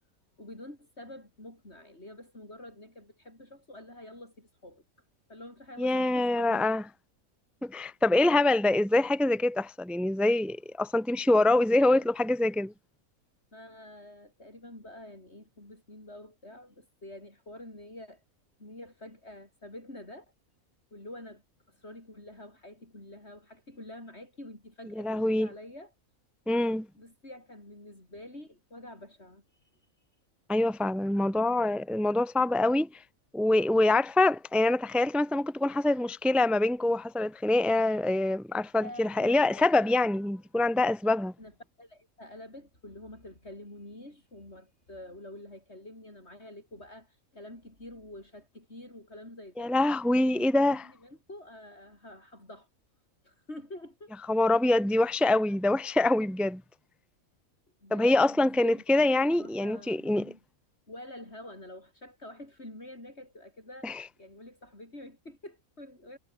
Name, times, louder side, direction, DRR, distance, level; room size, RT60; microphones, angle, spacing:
voice 1, 0.4-4.8 5.3-6.7 8.2-8.5 11.8-12.1 13.5-18.2 18.6-20.3 20.9-25.9 26.9-29.4 38.8-39.9 41.4-49.8 50.2-52.7 53.2-54.1 57.8-58.8 59.3-60.4 60.9-66.2, left 1 dB, 50° left, 8.3 m, -47 dB
voice 2, 5.8-6.8 7.6-12.7 25.0-25.5 26.5-26.9 30.5-32.9 33.3-41.3 49.6-50.8 54.3-56.6 57.9-60.3 63.8-64.0, left 2 dB, ahead, 0.9 m, -25 dB
omnidirectional pair, 1.5 m